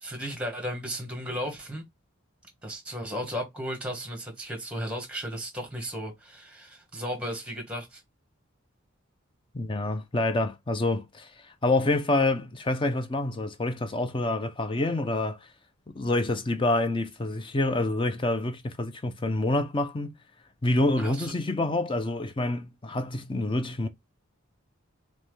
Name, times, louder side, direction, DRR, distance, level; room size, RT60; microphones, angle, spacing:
voice 1, 0.0-1.8 2.6-8.0 21.0-21.3, equal, 5° right, 1.2 m, -35 dB
voice 2, 9.5-15.5 15.9-20.1 20.6-23.9, left 2 dB, 25° left, 0.4 m, -27 dB
5.3 x 2.1 x 3.1 m
head